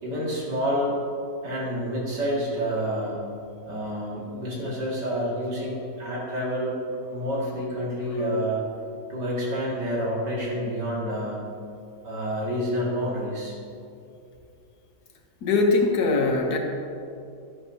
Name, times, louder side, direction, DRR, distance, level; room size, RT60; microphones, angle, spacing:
voice 1, 0.0-0.9 1.4-3.2 3.7-6.8 7.1-8.6 9.1-11.4 12.0-13.6, equal, 80° right, -6 dB, 2.9 m, -28 dB
voice 2, 15.4-16.6, left 3 dB, 70° left, 2 dB, 1.5 m, -21 dB
11.5 x 10.5 x 2.8 m, 2.6 s
omnidirectional pair, 1.8 m